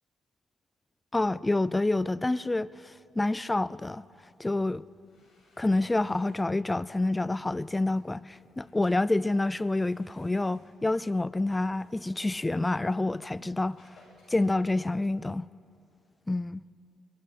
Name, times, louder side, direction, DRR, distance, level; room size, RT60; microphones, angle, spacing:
voice 1, 1.1-4.0 4.4-4.9 5.6-13.9 14.3-15.5 16.3-16.6, left 2 dB, 15° left, 0.4 m, -28 dB
sound 1, 4.8-15.4, left 2 dB, 70° left, 7.2 m, -65 dB
21.5 x 20.5 x 5.9 m
cardioid pair, 90°, 0 cm